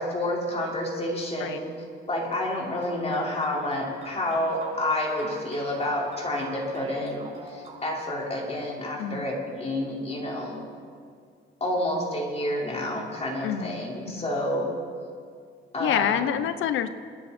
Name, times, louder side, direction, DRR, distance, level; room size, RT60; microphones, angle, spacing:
voice 1, 0.0-1.7 2.1-10.6 11.6-14.7 15.7-16.2, left 1 dB, 30° left, -3 dB, 4.9 m, -29 dB
sound 1, 2.8-8.1, right 2 dB, 35° right, 4.1 m, -44 dB
voice 2, 13.4-13.8 14.1-14.3 15.8-16.9, left 9 dB, 80° left, 12 dB, 1.0 m, -27 dB
28.5 x 11.0 x 4.4 m, 2.1 s
cardioid pair, 90°, 20 cm